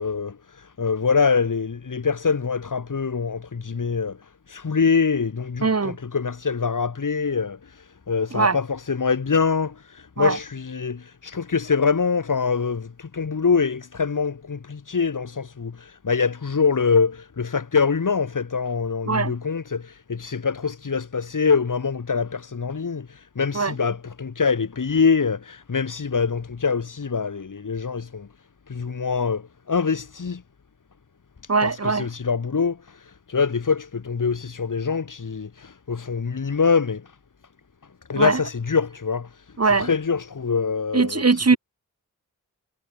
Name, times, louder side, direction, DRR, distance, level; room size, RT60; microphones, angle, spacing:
voice 1, 0.0-28.3 28.7-30.4 31.4-37.2 38.1-41.4, left 5 dB, 60° left, 6.0 m, -24 dB
voice 2, 5.6-6.0 8.3-8.6 10.2-10.4 19.1-19.3 23.5-23.7 31.5-32.1 38.1-38.4 39.6-39.9 40.9-41.6, right 4 dB, 45° right, 4.4 m, -21 dB
wide cardioid pair, 75°, 35 cm